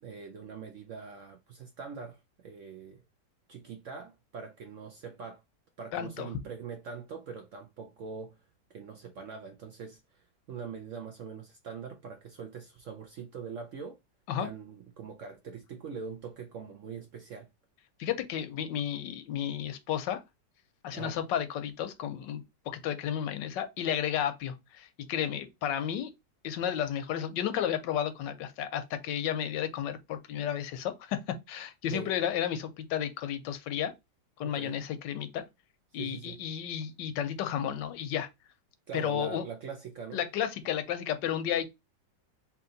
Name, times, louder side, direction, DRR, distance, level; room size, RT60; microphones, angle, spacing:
voice 1, 0.0-3.0 3.5-5.4 5.8-8.4 8.7-14.0 14.4-17.5 20.9-21.2 31.9-32.1 34.4-34.8 35.9-36.4 38.9-40.2, right 6 dB, 65° right, 0.7 m, -43 dB
voice 2, 5.9-6.3 14.3-14.5 18.0-20.2 20.8-26.1 26.4-33.9 34.4-35.4 35.9-38.3 38.9-39.4 40.1-41.7, left 9 dB, 85° left, 1.3 m, -32 dB
3.6 x 2.9 x 3.9 m
omnidirectional pair, 1.9 m